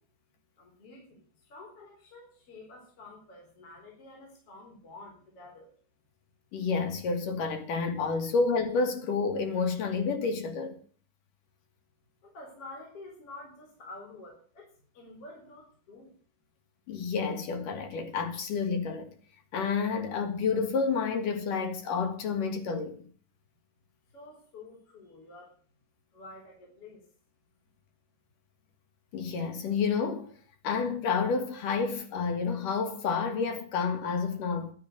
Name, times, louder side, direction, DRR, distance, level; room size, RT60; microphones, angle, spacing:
voice 1, 0.6-5.7 12.2-16.1 24.1-25.6 26.1-27.0, left 2 dB, 35° left, 4.8 m, -49 dB
voice 2, 6.5-10.8 16.9-19.1 19.5-23.1 29.1-30.3 30.6-34.7, left 5 dB, 55° left, 3.8 m, -29 dB
11.5 x 11.0 x 8.1 m
omnidirectional pair, 4.8 m